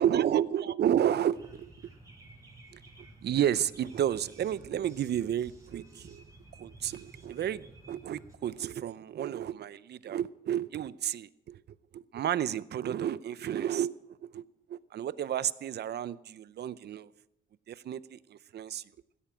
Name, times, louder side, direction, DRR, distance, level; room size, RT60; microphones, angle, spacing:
voice 1, 0.0-1.7 2.7-6.2 6.6-11.6 11.9-17.1 17.7-18.8, right 10 dB, 55° right, 17 dB, 0.6 m, -31 dB
sound 1, 1.3-8.3, right 2 dB, 15° right, 5.4 m, -53 dB
16.5 x 13.0 x 5.1 m, 0.85 s
cardioid pair, 90°, 20 cm